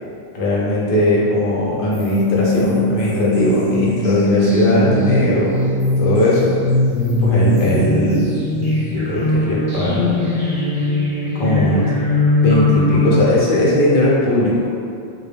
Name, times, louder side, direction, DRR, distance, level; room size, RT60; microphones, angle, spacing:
voice 1, 0.3-5.5 6.0-6.5 7.2-8.4 8.9-10.3 11.3-11.9 12.4-14.5, left 1 dB, 55° left, -6 dB, 0.7 m, -18 dB
sound 1, 1.9-13.2, left 2 dB, 60° right, 0.8 m, -19 dB
2.2 x 2.0 x 3.1 m, 2.4 s
omnidirectional pair, 1.2 m